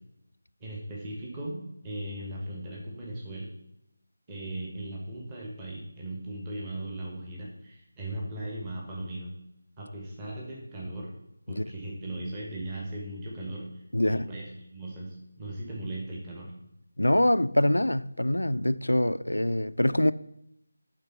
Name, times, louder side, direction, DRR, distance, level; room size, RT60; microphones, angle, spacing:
voice 1, 0.6-1.6 1.8-3.5 4.3-9.3 9.8-11.1 11.5-16.5, right 1 dB, 15° right, 1.3 m, -38 dB
voice 2, 13.9-14.3 17.0-20.1, left 1 dB, 75° left, 0.3 m, -24 dB
9.0 x 3.9 x 5.6 m
figure-of-eight pair, 160°, 0 cm